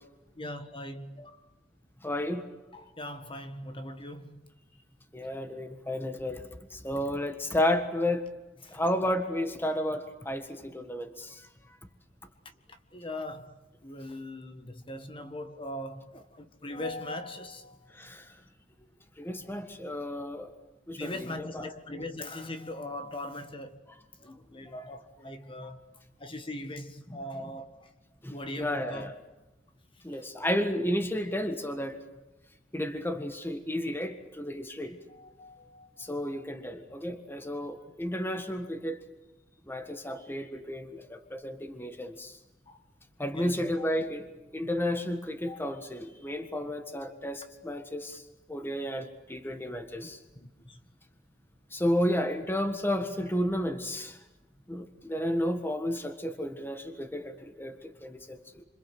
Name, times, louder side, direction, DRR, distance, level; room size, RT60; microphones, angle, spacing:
voice 1, 0.4-1.5 2.7-4.5 8.6-8.8 12.7-13.5 13.8-18.1 21.0-23.8 24.2-25.8 26.2-27.9 28.3-29.1 30.1-30.3 35.1-36.1 40.1-40.2 42.7-42.8 43.3-43.9 45.5-45.6 50.0-50.8, left 1 dB, 30° left, 1.7 m, -41 dB
voice 2, 2.0-2.4 5.1-6.4 6.7-8.3 8.7-11.5 17.9-18.3 19.2-20.5 20.9-21.7 28.2-29.1 30.0-32.0 32.7-35.0 36.0-39.0 39.7-42.4 43.2-48.2 48.5-50.2 51.7-54.2 54.7-58.6, left 1 dB, 10° left, 1.6 m, -32 dB
28.5 x 26.5 x 7.9 m
head